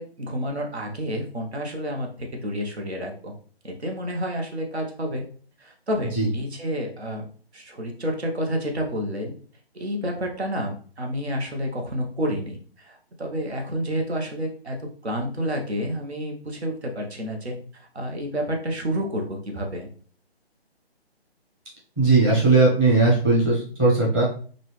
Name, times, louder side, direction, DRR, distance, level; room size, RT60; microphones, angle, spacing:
voice 1, 0.0-3.3 3.6-5.2 5.6-7.3 7.5-9.3 9.7-19.9, equal, 80° right, 2 dB, 1.2 m, -29 dB
voice 2, 22.0-24.2, right 3 dB, 15° right, -6 dB, 0.9 m, -18 dB
4.0 x 2.5 x 3.2 m, 0.44 s
figure-of-eight pair, 155°, 32 cm